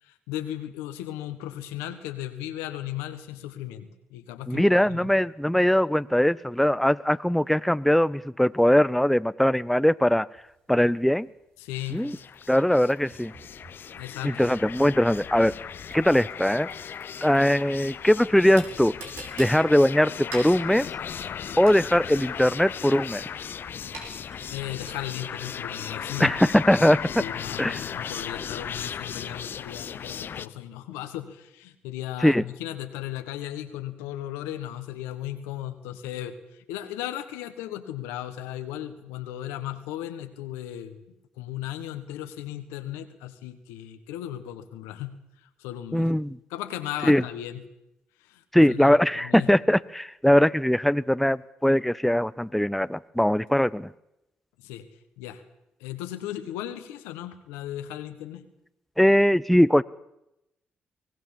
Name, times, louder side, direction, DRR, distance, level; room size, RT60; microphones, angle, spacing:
voice 1, 0.0-5.1 11.6-12.1 14.0-14.4 24.5-26.4 27.2-41.0 41.4-45.2 45.6-46.1 46.5-47.6 48.2-49.5 54.6-54.9 55.2-55.4 55.8-58.4, left 12 dB, 90° left, 9 dB, 1.6 m, -36 dB
voice 2, 4.5-10.3 10.7-11.3 11.9-12.2 12.5-13.3 14.2-15.5 15.9-16.7 17.2-18.9 19.4-20.9 21.6-23.2 26.2-27.1 27.6-27.8 32.2-32.4 45.9-46.4 47.0-47.2 48.5-53.9 59.0-59.8, equal, 5° left, 16 dB, 0.7 m, -21 dB
sound 1, 10.3-25.4, right 3 dB, 80° right, 5.2 m, -47 dB
sound 2, 11.7-30.5, left 8 dB, 55° left, 0.8 m, -37 dB
23.5 x 18.0 x 7.4 m, 0.84 s
hypercardioid pair, 50°, 4 cm